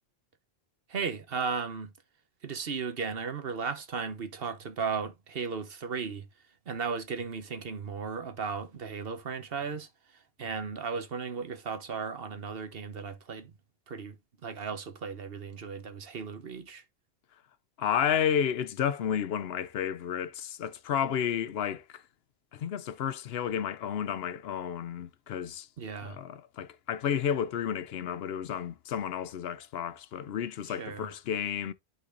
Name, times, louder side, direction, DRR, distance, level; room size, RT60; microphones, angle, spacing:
voice 1, 0.9-1.9 2.4-6.3 6.7-13.5 13.9-14.2 14.4-16.8 25.8-26.2 30.8-31.1, right 5 dB, 65° right, 1.2 m, -35 dB
voice 2, 17.8-22.0 22.5-25.7 26.0-31.7, left 8 dB, 70° left, 0.8 m, -31 dB
11.5 x 4.2 x 2.6 m
omnidirectional pair, 1.1 m